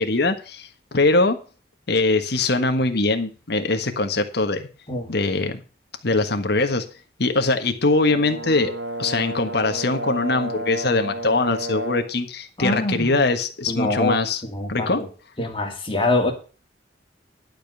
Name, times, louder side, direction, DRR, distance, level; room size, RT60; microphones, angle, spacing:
voice 1, 0.0-1.4 1.9-4.7 5.1-5.6 6.0-6.9 7.2-8.7 9.0-14.4 14.7-15.0, left 3 dB, 65° left, 7 dB, 1.5 m, -22 dB
Brass instrument, 8.0-12.2, right 1 dB, 90° right, 1.6 m, -31 dB
voice 2, 12.6-13.1 13.7-14.2 14.4-15.1 15.4-16.3, left 2 dB, 30° left, 2 dB, 2.4 m, -24 dB
11.5 x 5.3 x 8.0 m, 0.35 s
head